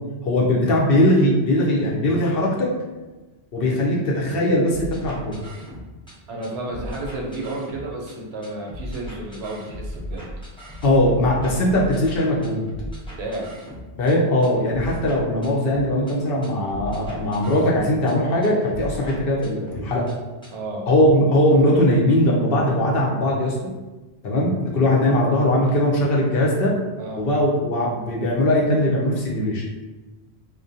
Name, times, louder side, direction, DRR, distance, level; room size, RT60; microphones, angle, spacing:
voice 1, 0.2-2.7 3.5-5.4 10.8-12.6 14.0-20.1 20.9-23.6 24.2-26.8 27.2-29.6, left 1 dB, 65° left, -3 dB, 0.7 m, -20 dB
sound 1, 4.7-6.1 6.4-8.1 8.4-14.1 14.4-16.1 16.4-18.1 18.4-20.1 20.4-20.5, equal, 5° left, 0.4 m, -36 dB
voice 2, 6.3-10.3 13.2-13.5 20.5-20.9 27.0-27.3, right 2 dB, 70° right, -1 dB, 0.8 m, -32 dB
2.4 x 2.1 x 2.6 m, 1.2 s
omnidirectional pair, 1.1 m